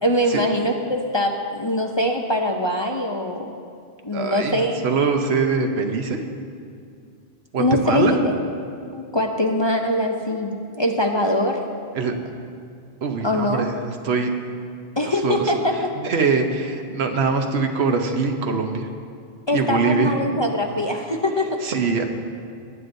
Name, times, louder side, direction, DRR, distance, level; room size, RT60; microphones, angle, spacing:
voice 1, 0.0-3.5 4.0-4.8 7.6-8.3 8.9-11.6 13.2-13.6 15.0-15.9 19.5-21.6, left 1 dB, 30° left, 2 dB, 0.5 m, -22 dB
voice 2, 4.1-6.2 7.5-8.2 11.9-12.1 13.0-14.3 15.0-15.6 16.0-18.9 19.5-20.1 21.6-22.0, right 4 dB, 75° right, 5 dB, 1.1 m, -23 dB
19.0 x 9.6 x 2.6 m, 2.3 s
omnidirectional pair, 1.1 m